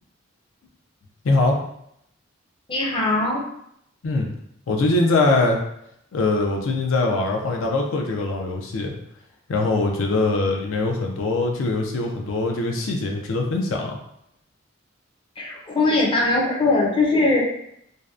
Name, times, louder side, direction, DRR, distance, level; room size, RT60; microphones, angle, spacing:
voice 1, 1.2-1.6 4.0-4.3 4.7-5.6 6.1-9.0 9.5-14.0, left 2 dB, 85° left, 1 dB, 0.4 m, -22 dB
voice 2, 2.7-3.4 15.4-17.5, left 2 dB, 25° left, -2 dB, 0.4 m, -20 dB
2.6 x 2.1 x 2.3 m, 0.75 s
head